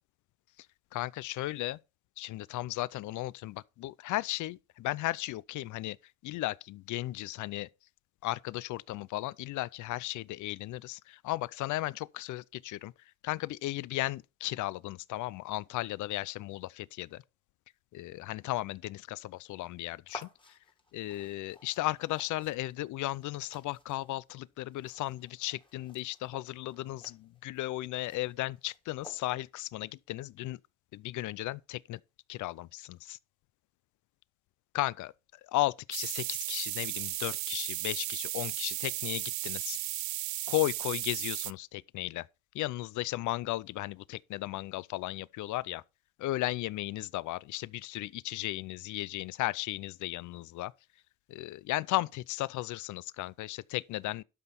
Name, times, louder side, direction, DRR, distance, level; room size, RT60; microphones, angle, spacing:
voice 1, 0.9-1.8 2.2-6.0 6.2-7.7 8.2-12.9 13.2-17.2 17.9-20.6 20.9-30.6 30.9-32.0 32.3-33.2 34.7-35.1 35.4-39.8 40.5-42.3 42.5-45.8 46.2-50.7 51.3-54.2, left 17 dB, 75° left, 0.5 m, -35 dB
sound 1, 20.1-29.6, left 2 dB, 15° left, 1.9 m, -54 dB
sound 2, 35.9-41.5, right 17 dB, 70° right, 0.4 m, -35 dB
12.0 x 5.6 x 4.2 m
cardioid pair, 90°, 30 cm